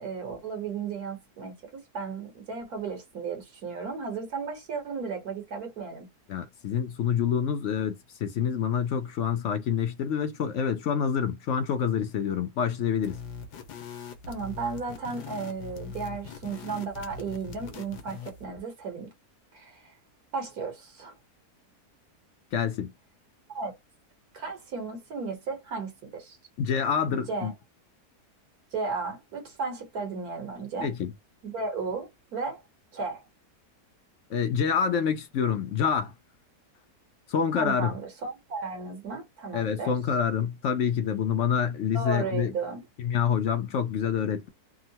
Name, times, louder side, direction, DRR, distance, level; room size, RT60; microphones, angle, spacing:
voice 1, 0.0-6.1 14.3-19.1 19.5-19.8 20.3-21.1 23.5-23.7 24.3-26.4 27.1-27.5 28.7-30.9 31.4-32.6 32.9-33.2 37.6-40.0 41.9-42.8, right 4 dB, 65° right, 1.6 m, -34 dB
voice 2, 6.3-13.2 22.5-22.9 26.6-27.5 30.8-31.1 34.3-36.1 37.3-37.9 39.5-42.5 43.0-44.5, left 7 dB, 70° left, 0.7 m, -27 dB
sound 1, 13.0-18.5, left 5 dB, 85° left, 1.4 m, -42 dB
3.6 x 2.1 x 2.7 m
omnidirectional pair, 1.7 m